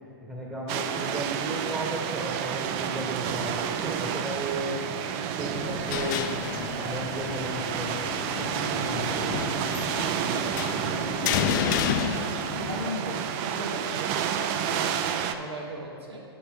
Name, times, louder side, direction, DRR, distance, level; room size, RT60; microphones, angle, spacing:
voice 1, 0.2-4.8 5.4-9.5, right 1 dB, 10° right, -4 dB, 1.2 m, -35 dB
sound 1, 0.7-15.4, right 8 dB, 35° right, 0.4 m, -30 dB
sound 2, 5.5-12.9, left 9 dB, 50° left, 0.5 m, -31 dB
voice 2, 12.6-16.2, right 1 dB, 90° right, -1 dB, 1.2 m, -36 dB
10.0 x 6.5 x 3.6 m, 2.3 s
hypercardioid pair, 120°, 13 cm